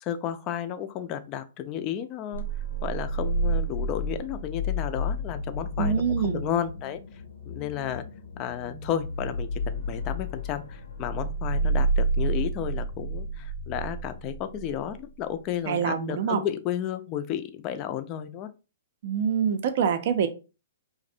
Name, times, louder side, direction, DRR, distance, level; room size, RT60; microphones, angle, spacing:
voice 1, 0.0-2.4 2.8-7.0 7.5-8.0 8.4-18.5, left 10 dB, 35° left, 0.3 m, -32 dB
sound 1, 2.3-15.0, right 2 dB, 80° left, 0.6 m, -30 dB
voice 2, 5.8-6.5 15.7-16.4 19.0-20.3, right 7 dB, 55° right, 0.4 m, -25 dB
2.4 x 2.0 x 2.5 m
hypercardioid pair, 120°, 0 cm